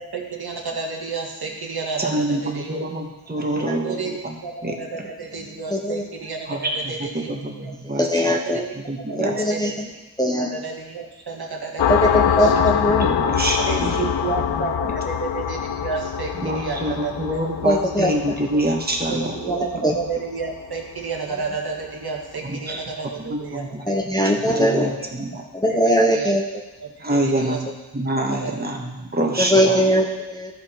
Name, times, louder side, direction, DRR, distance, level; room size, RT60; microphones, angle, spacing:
voice 1, 0.0-2.8 3.8-4.1 4.4-7.7 8.4-8.6 9.2-9.9 10.4-12.5 13.6-17.8 19.1-24.0 24.7-25.1 25.7-26.3 26.8-27.6 28.4-28.6, right 4 dB, 60° right, 0 dB, 1.6 m, -31 dB
voice 2, 2.0-4.4 4.6-4.7 6.5-8.3 8.9-9.4 12.5-12.7 13.0-14.1 16.4-19.4 22.4-22.8 23.2-23.8 24.4-25.4 27.0-29.8, right 1 dB, 20° right, 1 dB, 1.5 m, -26 dB
voice 3, 5.7-6.0 7.9-8.6 9.1-9.9 10.2-10.5 11.9-13.1 17.6-18.1 19.4-19.5 19.8-19.9 23.9-24.9 25.5-26.4 29.4-30.5, equal, 10° left, 0 dB, 0.8 m, -20 dB
sound 1, 11.8-21.0, left 9 dB, 75° left, 0.6 m, -25 dB
14.0 x 5.1 x 4.4 m, 1.1 s
wide cardioid pair, 90°, 43 cm